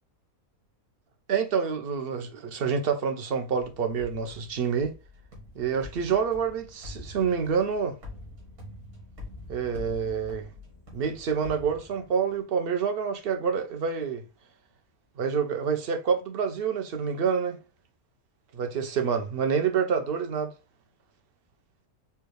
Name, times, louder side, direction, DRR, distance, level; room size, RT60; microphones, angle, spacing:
voice 1, 1.3-4.9 5.6-8.0 9.5-10.5 10.9-14.3 15.2-17.6 18.5-20.5, right 6 dB, 50° right, 0.7 m, -27 dB
sound 1, 3.6-12.4, left 2 dB, 80° right, 2.0 m, -45 dB
4.6 x 2.3 x 3.2 m
omnidirectional pair, 1.5 m